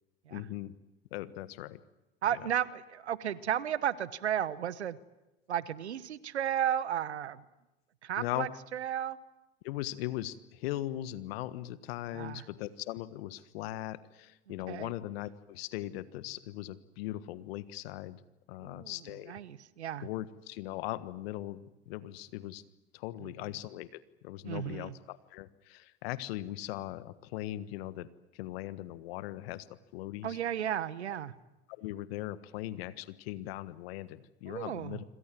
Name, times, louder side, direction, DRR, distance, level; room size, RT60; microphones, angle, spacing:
voice 1, 0.3-0.8 1.1-1.8 8.2-8.5 9.6-18.2 18.5-19.3 20.0-22.6 22.9-23.9 24.2-28.1 28.3-29.7 29.9-30.4 31.8-35.0, left 15 dB, 65° left, 14 dB, 1.5 m, -39 dB
voice 2, 2.2-5.0 5.5-7.4 8.0-9.2 12.1-12.5 14.5-14.9 18.6-20.1 23.2-23.6 24.4-24.9 30.2-31.3 34.5-35.0, right 10 dB, 85° right, 16 dB, 1.3 m, -34 dB
26.5 x 26.0 x 7.7 m, 0.97 s
hypercardioid pair, 85°, 33 cm